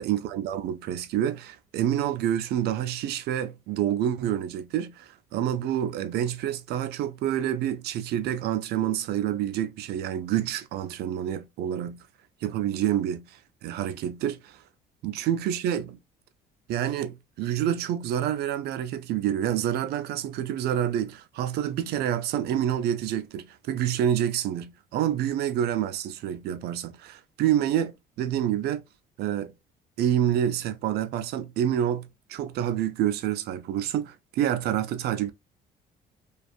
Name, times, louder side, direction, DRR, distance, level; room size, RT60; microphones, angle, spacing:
voice 1, 0.0-12.0 12.4-14.6 15.0-16.0 16.7-28.8 29.2-29.5 30.0-35.3, right 10 dB, 75° right, 0.5 m, -28 dB
2.5 x 2.3 x 2.3 m
cardioid pair, 110°, 17 cm